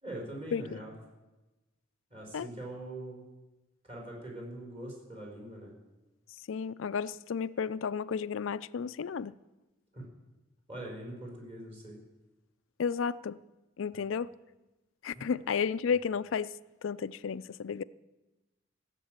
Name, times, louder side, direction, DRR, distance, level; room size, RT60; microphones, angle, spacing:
voice 1, 0.0-0.9 2.1-3.2 3.8-5.7 9.9-10.0 10.7-12.0 13.9-14.0 15.1-15.4, right 1 dB, 30° right, 4.3 m, -43 dB
voice 2, 6.5-9.4 12.8-13.4 13.8-14.3 15.0-16.5 16.8-17.8, left 6 dB, 65° left, 0.4 m, -32 dB
16.0 x 7.6 x 8.8 m
head